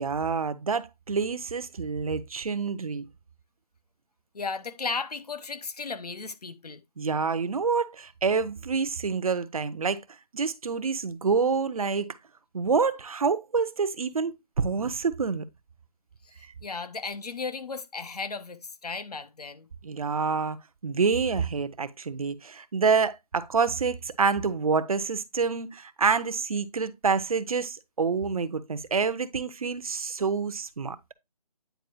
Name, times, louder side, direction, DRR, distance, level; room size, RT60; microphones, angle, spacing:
voice 1, 0.0-3.0 7.0-10.0 10.3-12.2 12.5-15.4 19.8-31.0, right 5 dB, 60° right, 0.7 m, -27 dB
voice 2, 4.3-6.8 16.4-19.7, left 4 dB, 70° left, 1.0 m, -35 dB
9.2 x 4.5 x 2.8 m
figure-of-eight pair, 160°, 21 cm